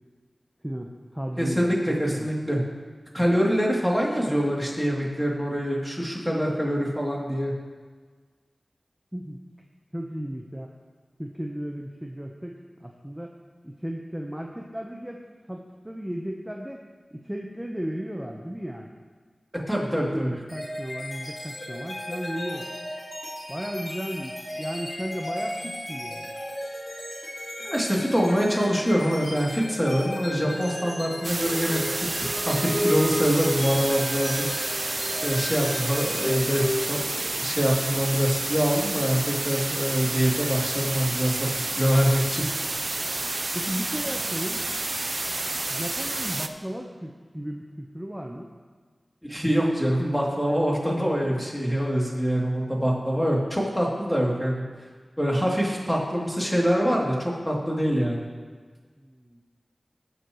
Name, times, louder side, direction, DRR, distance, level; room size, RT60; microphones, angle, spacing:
voice 1, 0.6-2.3 9.1-9.4 9.9-10.7 11.2-12.6 12.8-13.3 13.6-15.2 15.5-16.8 17.1-19.0 19.9-22.7 23.5-26.3 43.5-44.6 45.7-48.5 59.0-59.4, equal, 10° right, 0 dB, 1.1 m, -35 dB
voice 2, 1.4-2.6 3.1-7.5 19.7-20.3 27.6-34.4 35.2-42.4 49.3-54.6 55.2-58.2, equal, 5° left, -3 dB, 3.0 m, -25 dB
sound 1, 20.5-37.1, left 1 dB, 55° left, 3.8 m, -33 dB
sound 2, 31.2-46.5, right 2 dB, 55° right, 0.7 m, -30 dB
20.0 x 7.7 x 3.2 m, 1.5 s
cardioid pair, 40°, 0 cm